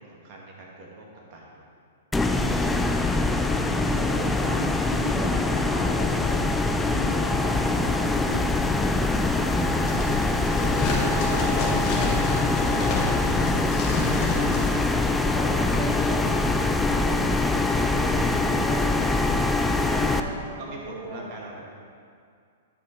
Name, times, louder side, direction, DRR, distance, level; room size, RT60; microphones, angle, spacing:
voice 1, 0.0-1.6 3.5-4.5 9.2-10.2 19.7-21.7, right 2 dB, 45° right, -2 dB, 1.8 m, -43 dB
sound 1, 2.1-20.2, left 2 dB, 10° left, 0.4 m, -23 dB
voice 2, 2.5-6.5 6.9-9.2 10.5-13.9 15.3-17.3 18.0-19.3 19.8-21.3, right 1 dB, 20° right, -4 dB, 1.8 m, -37 dB
sound 2, 9.5-14.7, left 2 dB, 40° left, 1.4 m, -31 dB
9.2 x 4.6 x 4.4 m, 2.3 s
hypercardioid pair, 115°, 0 cm